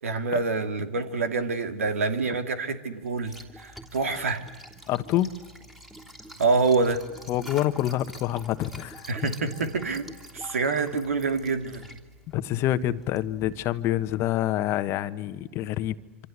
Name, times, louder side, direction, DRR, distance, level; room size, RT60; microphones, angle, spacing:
voice 1, 0.0-4.4 6.4-7.0 9.1-10.0 10.3-11.8, right 4 dB, 80° right, 8 dB, 2.7 m, -26 dB
Liquid, 3.0-14.3, equal, 5° right, 3.2 m, -47 dB
voice 2, 4.9-5.4 7.3-9.1 12.3-15.9, left 13 dB, 40° left, 11 dB, 1.2 m, -27 dB
27.0 x 25.5 x 8.2 m, 1.3 s
hypercardioid pair, 115°, 7 cm